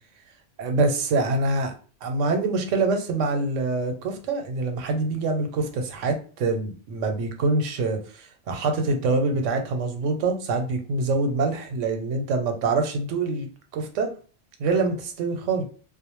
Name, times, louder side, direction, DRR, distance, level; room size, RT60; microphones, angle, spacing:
voice 1, 0.6-1.7 2.0-14.1 14.6-15.6, right 3 dB, 90° right, 5 dB, 0.9 m, -25 dB
2.3 x 2.0 x 2.9 m, 0.39 s
omnidirectional pair, 1.2 m